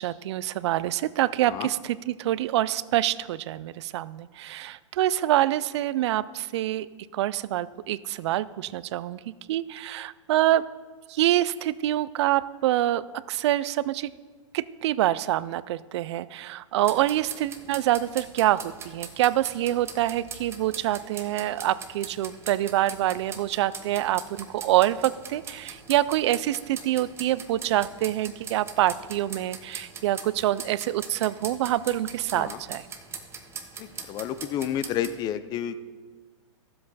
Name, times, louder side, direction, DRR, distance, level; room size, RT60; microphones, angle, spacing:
voice 1, 0.0-6.9 7.1-10.7 11.1-14.1 14.5-32.8, right 14 dB, 60° right, 18 dB, 0.4 m, -26 dB
sound 1, 16.8-35.1, right 5 dB, 15° right, 0.8 m, -42 dB
voice 2, 33.8-35.8, left 10 dB, 25° left, 13 dB, 0.5 m, -30 dB
13.5 x 7.7 x 4.0 m, 1.5 s
hypercardioid pair, 140°, 17 cm